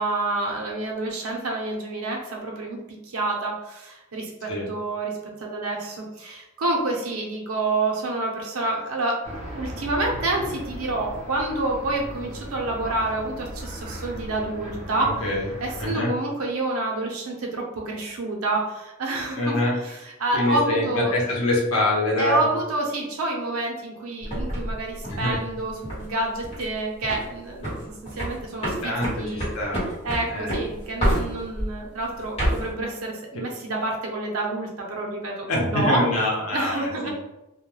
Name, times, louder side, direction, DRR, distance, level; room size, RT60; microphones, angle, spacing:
voice 1, 0.0-2.8 3.0-15.1 15.6-19.6 19.8-21.1 22.2-27.8 28.0-29.5 30.0-36.0 36.5-37.1, right 2 dB, 85° right, 0 dB, 0.6 m, -28 dB
sound 1, 9.2-15.9, equal, 30° right, 0.6 m, -37 dB
voice 2, 15.0-15.5 15.8-16.1 19.4-19.8 20.3-22.4 25.1-25.4 28.6-29.9 30.3-30.6 35.5-37.1, left 1 dB, 85° left, -3 dB, 0.8 m, -25 dB
sound 2, 24.2-26.1 26.4-26.7 27.0-27.3 27.6-31.7 32.2-32.7, equal, 30° left, 1.1 m, -27 dB
2.2 x 2.2 x 3.0 m, 0.96 s
head